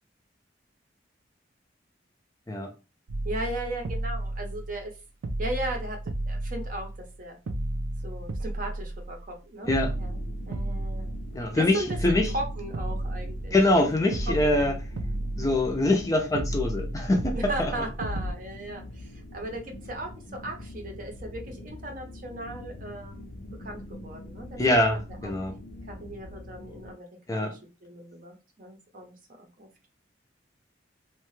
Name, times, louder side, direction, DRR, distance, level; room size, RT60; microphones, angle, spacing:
sound 1, 3.1-4.9 5.2-7.1 7.5-9.3 9.7-11.6 11.9-13.8 14.1-16.0 16.3-18.3, right 1 dB, 80° right, 0.4 m, -33 dB
voice 1, 3.2-4.9 5.4-6.0 6.3-6.9 7.2-7.4 8.0-10.2 10.5-11.1 11.5-13.9 14.3-14.8 17.3-25.3 25.9-29.7, right 1 dB, 45° right, 0.6 m, -37 dB
sound 2, 9.6-26.9, left 1 dB, 70° left, 0.6 m, -43 dB
voice 2, 11.3-12.3 13.5-14.7 15.4-17.7 24.6-25.5 27.3-27.5, left 2 dB, 20° left, 0.5 m, -24 dB
2.8 x 2.2 x 3.0 m
head